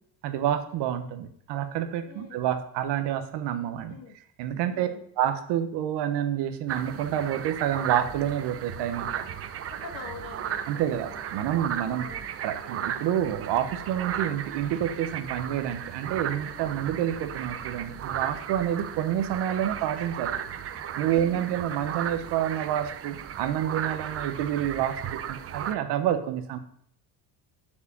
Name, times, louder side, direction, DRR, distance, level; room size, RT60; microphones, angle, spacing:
voice 1, 0.2-3.9 4.4-4.9 5.2-9.1 10.7-12.1 12.4-20.3 21.0-26.6, right 10 dB, 70° right, 8 dB, 1.1 m, -28 dB
voice 2, 2.0-2.5 3.6-4.1 4.6-5.1 9.7-11.2 11.9-12.3 16.5-17.0 21.1-21.5, left 5 dB, 50° left, 4 dB, 1.6 m, -46 dB
sound 1, 6.7-25.7, right 9 dB, 35° right, 0.5 m, -35 dB
7.1 x 4.9 x 6.9 m, 0.65 s
cardioid pair, 140°, 43 cm